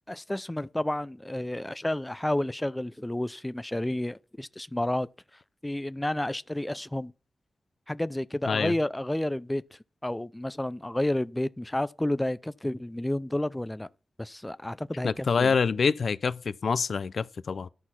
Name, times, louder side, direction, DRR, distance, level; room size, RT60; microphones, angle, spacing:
voice 1, 0.1-5.1 5.6-7.1 7.9-9.6 10.0-13.9 14.2-15.5, left 1 dB, 10° left, 0.4 m, -30 dB
voice 2, 15.0-17.7, left 5 dB, 70° left, 0.5 m, -26 dB
11.0 x 6.2 x 5.8 m
wide cardioid pair, 80°, 0 cm